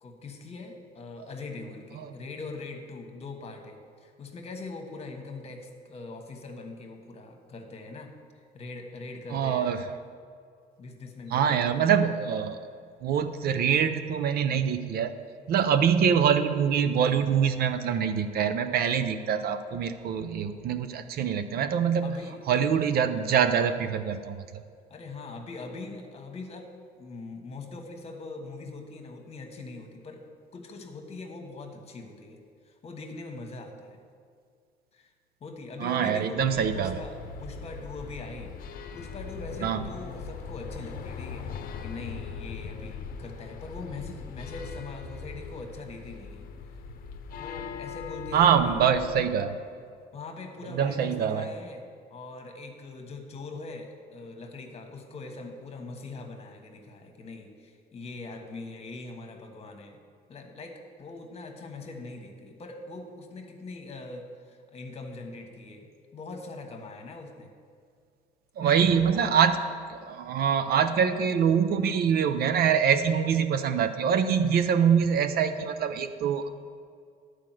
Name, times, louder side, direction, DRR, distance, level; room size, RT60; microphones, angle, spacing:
voice 1, 0.0-9.7 10.8-11.8 22.0-22.4 24.9-26.7 27.0-30.2 30.5-32.4 32.7-34.0 34.9-35.1 35.4-38.5 38.9-41.5 41.8-46.5 47.4-48.8 50.1-51.8 52.1-60.0 60.3-65.9 66.1-67.5 68.6-69.3, left 3 dB, 40° left, 4 dB, 1.4 m, -42 dB
voice 2, 9.3-9.8 11.3-12.6 13.0-15.1 15.5-22.2 22.5-24.4 35.8-37.0 39.6-39.8 48.3-49.6 50.8-51.5 68.6-69.6 69.9-76.5, right 7 dB, 65° right, 10 dB, 0.7 m, -24 dB
sound 1, 36.4-49.2, left 6 dB, 55° left, 0.8 m, -40 dB
10.5 x 4.9 x 7.6 m, 2.2 s
cardioid pair, 110°, 17 cm